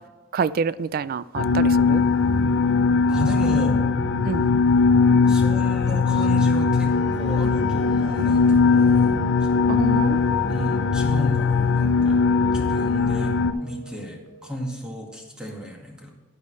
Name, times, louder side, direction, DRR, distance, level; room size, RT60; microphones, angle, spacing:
voice 1, 0.3-2.0 4.2-4.5 9.7-10.2, right 5 dB, 50° right, 0.3 m, -27 dB
sound 1, 1.3-13.5, left 4 dB, 80° left, 0.5 m, -20 dB
voice 2, 3.1-3.8 5.2-9.2 9.7-9.8 10.5-12.2 12.5-13.3 13.6-16.1, equal, 5° right, 1.9 m, -33 dB
sound 2, 6.8-14.8, right 1 dB, 55° left, 2.0 m, -42 dB
10.5 x 10.5 x 3.2 m
head